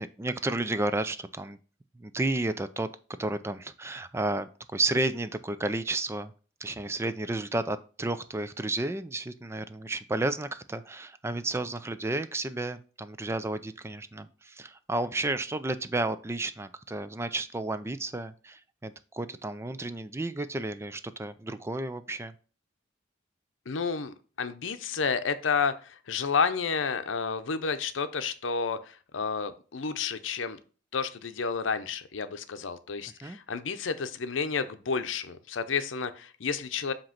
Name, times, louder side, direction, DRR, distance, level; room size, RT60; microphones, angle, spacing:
voice 1, 0.0-1.6 1.9-2.9 3.2-6.3 6.6-22.3 33.2-33.4, right 2 dB, 15° right, 12 dB, 0.3 m, -32 dB
voice 2, 23.7-30.6 30.9-36.9, left 5 dB, 85° left, 10 dB, 0.7 m, -31 dB
7.6 x 3.0 x 5.7 m, 0.38 s
head